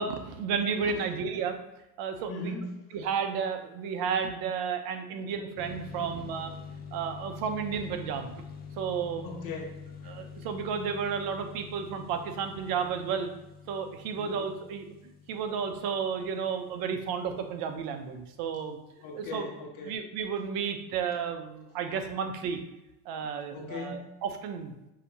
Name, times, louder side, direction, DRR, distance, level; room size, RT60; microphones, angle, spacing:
voice 1, 0.0-1.6 2.0-2.5 2.9-6.5 6.9-8.3 8.8-9.3 10.1-13.3 13.7-14.9 15.3-18.8 19.2-19.5 19.8-22.6 23.1-24.9, right 6 dB, 50° right, 7 dB, 0.7 m, -32 dB
voice 2, 2.3-2.7 5.2-5.3 6.0-6.2 9.2-10.1 14.1-14.4 19.0-19.9 23.5-24.1, left 3 dB, 45° left, -1 dB, 1.2 m, -39 dB
sound 1, 5.6-18.0, left 6 dB, 20° left, 0.4 m, -46 dB
5.7 x 2.8 x 2.7 m, 0.91 s
supercardioid pair, 105°, 46 cm